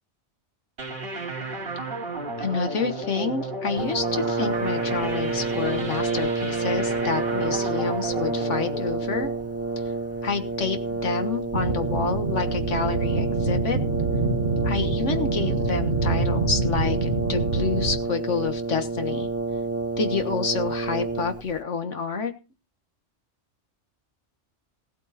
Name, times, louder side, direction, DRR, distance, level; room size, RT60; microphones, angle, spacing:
sound 1, 0.8-10.1, right 3 dB, 55° right, 2.5 m, -33 dB
voice 1, 2.4-9.3 10.2-13.8 14.6-19.3 20.0-22.3, left 5 dB, 85° left, 8 dB, 1.8 m, -28 dB
Brass instrument, 3.8-21.6, right 3 dB, 15° right, 0.6 m, -29 dB
sound 2, 11.5-18.0, right 3 dB, 85° right, 2.1 m, -26 dB
17.5 x 8.4 x 4.2 m, 0.31 s
omnidirectional pair, 1.2 m